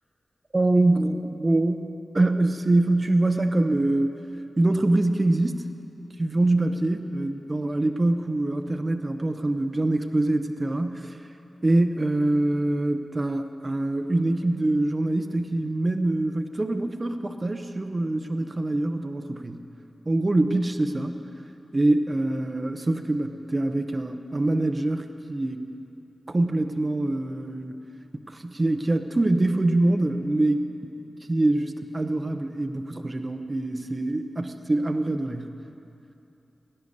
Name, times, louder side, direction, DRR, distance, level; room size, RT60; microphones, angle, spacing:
voice 1, 0.5-4.1 4.6-5.7 6.2-11.2 11.6-19.6 20.1-21.1 21.7-25.7 26.3-27.8 28.3-30.9 31.3-35.5, right 2 dB, 30° right, 7 dB, 0.7 m, -24 dB
17.0 x 9.9 x 6.7 m, 2.8 s
wide cardioid pair, 70°, 0 cm